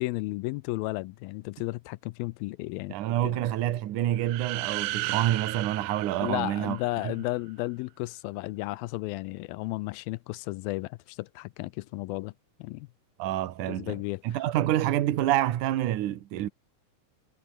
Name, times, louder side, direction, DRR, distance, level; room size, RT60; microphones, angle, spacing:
voice 1, 0.0-3.0 3.2-3.4 6.2-12.3 12.6-12.9 13.7-14.2, left 21 dB, 85° left, 2.4 m, -33 dB
voice 2, 2.9-6.8 7.0-7.1 13.2-14.0 14.2-16.5, right 13 dB, 65° right, 2.6 m, -27 dB
sound 1, 4.2-7.1, right 20 dB, 85° right, 2.4 m, -34 dB
omnidirectional pair, 4.2 m